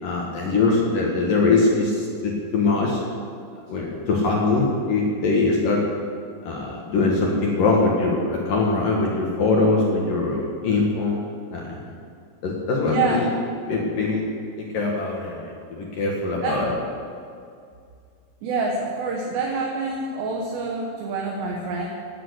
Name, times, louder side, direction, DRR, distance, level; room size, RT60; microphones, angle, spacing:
voice 1, 0.0-3.0 3.7-5.8 6.4-11.2 11.5-11.8 12.4-13.3 13.7-14.2 14.6-16.7, left 3 dB, 55° left, -2 dB, 2.9 m, -22 dB
voice 2, 12.9-13.3 16.4-16.6 18.4-21.9, right 3 dB, 70° right, -1 dB, 3.4 m, -26 dB
17.0 x 9.2 x 8.2 m, 2.3 s
omnidirectional pair, 5.4 m